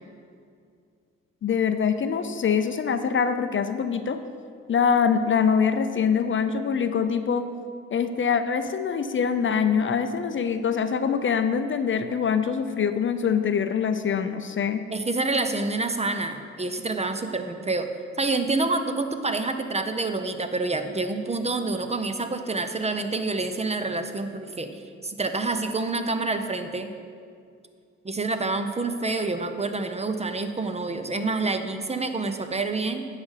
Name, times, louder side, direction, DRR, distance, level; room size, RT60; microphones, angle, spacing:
voice 1, 1.4-4.2 4.7-7.5 7.9-14.8, left 6 dB, 40° left, 9 dB, 0.5 m, -24 dB
voice 2, 14.9-17.9 18.2-26.9 28.0-33.1, right 3 dB, 20° right, 8 dB, 0.7 m, -27 dB
9.6 x 4.9 x 5.7 m, 2.3 s
supercardioid pair, 60°, 31 cm